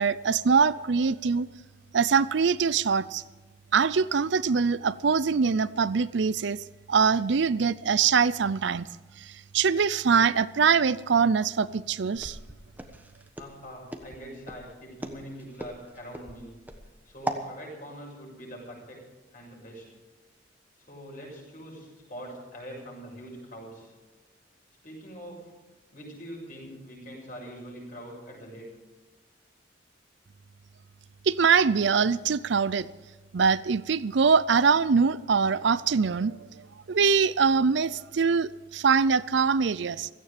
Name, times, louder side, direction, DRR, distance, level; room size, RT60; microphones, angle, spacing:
voice 1, 0.0-1.5 1.9-3.2 3.7-6.6 6.9-8.9 9.5-12.4 31.3-32.9 33.3-36.4 36.9-40.1, right 5 dB, 65° right, 18 dB, 0.5 m, -23 dB
Walk footsteps, 12.2-17.5, right 1 dB, 10° right, 1.2 m, -38 dB
voice 2, 13.4-16.6 17.0-19.0 19.3-20.0 20.9-23.9 24.8-25.5 25.9-28.7, equal, 45° left, -1 dB, 6.8 m, -43 dB
16.5 x 15.0 x 5.0 m, 1.3 s
head